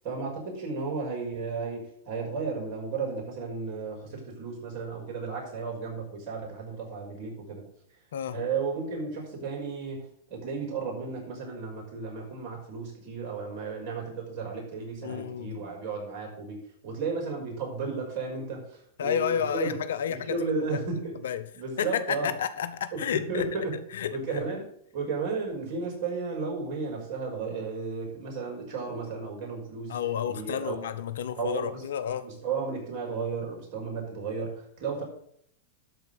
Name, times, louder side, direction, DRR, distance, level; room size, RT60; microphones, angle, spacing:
voice 1, 0.0-7.6 8.3-19.7 20.1-21.2 21.5-22.3 22.9-23.8 24.1-24.7 24.9-30.0 30.3-30.8 31.4-31.8 32.2-35.0, right 4 dB, 50° right, 5.8 m, -34 dB
voice 2, 15.0-15.6 19.0-20.8 21.2-21.4 21.8-23.5 23.9-24.6 29.9-32.3, left 9 dB, 75° left, 0.9 m, -31 dB
12.5 x 4.6 x 8.0 m
hypercardioid pair, 105°, 0 cm